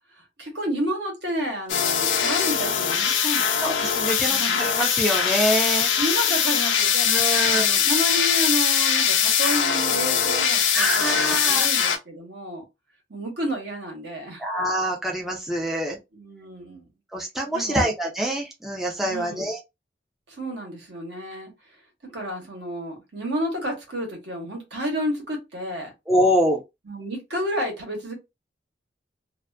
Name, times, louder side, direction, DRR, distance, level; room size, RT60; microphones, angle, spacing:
voice 1, 0.1-3.9 4.3-4.7 6.0-12.6 13.1-14.4 16.1-16.8 17.5-17.9 19.0-19.5 20.3-21.5 22.0-25.9 26.9-28.1, equal, 65° right, 1.1 m, -31 dB
sound 1, 1.7-12.0, left 8 dB, 90° left, 0.5 m, -22 dB
voice 2, 3.6-5.9 7.1-7.6 10.7-11.7 14.4-16.0 17.1-19.6 26.1-26.6, equal, ahead, 0.4 m, -25 dB
2.5 x 2.4 x 2.2 m
head